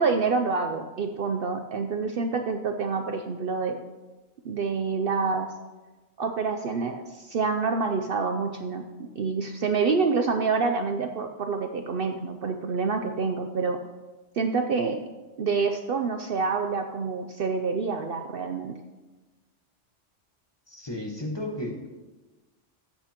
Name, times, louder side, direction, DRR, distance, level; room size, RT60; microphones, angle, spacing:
voice 1, 0.0-3.8 4.4-5.5 6.2-13.8 14.4-15.0 15.4-18.7, right 4 dB, 60° right, 6 dB, 0.7 m, -27 dB
voice 2, 20.7-21.9, left 1 dB, 20° left, 1 dB, 1.1 m, -33 dB
13.0 x 8.1 x 2.9 m, 1.2 s
omnidirectional pair, 1.3 m